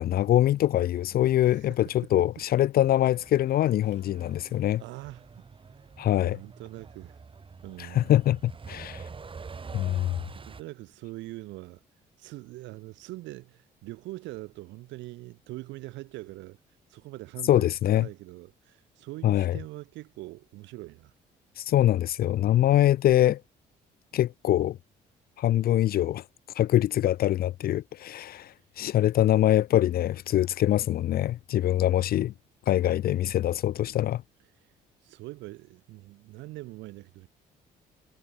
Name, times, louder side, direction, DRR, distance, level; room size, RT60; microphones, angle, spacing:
voice 1, 0.0-4.8 6.0-6.4 7.9-9.0 9.7-10.2 17.5-18.1 19.2-19.6 21.6-23.4 24.1-24.8 25.4-26.2 26.6-32.3 32.7-34.2, left 13 dB, 55° left, 0.4 m, -24 dB
voice 2, 1.5-2.3 4.8-5.3 5.7-5.9 6.2-7.2 7.6-8.1 10.3-11.8 12.2-16.6 16.9-17.7 17.9-21.1 34.6-34.7 35.0-37.3, right 19 dB, 85° right, 2.3 m, -43 dB
Truck, 3.0-10.6, right 5 dB, 30° right, 0.9 m, -46 dB
supercardioid pair, 70°, 18 cm